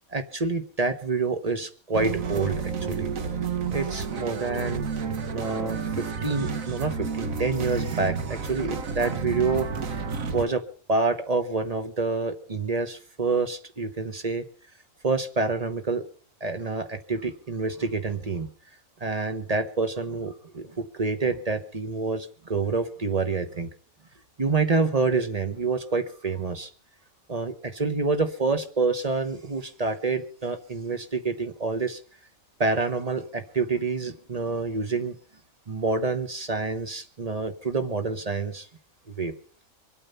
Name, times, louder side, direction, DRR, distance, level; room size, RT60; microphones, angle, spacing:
voice 1, 0.1-3.1 3.7-4.9 5.3-9.7 10.3-10.6 10.9-14.4 15.0-16.0 16.4-18.5 19.0-23.7 24.4-26.7 27.3-32.0 32.6-35.2 35.7-38.7 39.1-39.3, right 3 dB, 30° right, 8 dB, 1.1 m, -27 dB
sound 1, 1.9-10.4, right 5 dB, 75° right, 1.6 m, -30 dB
24.5 x 8.7 x 5.6 m, 0.43 s
omnidirectional pair, 1.4 m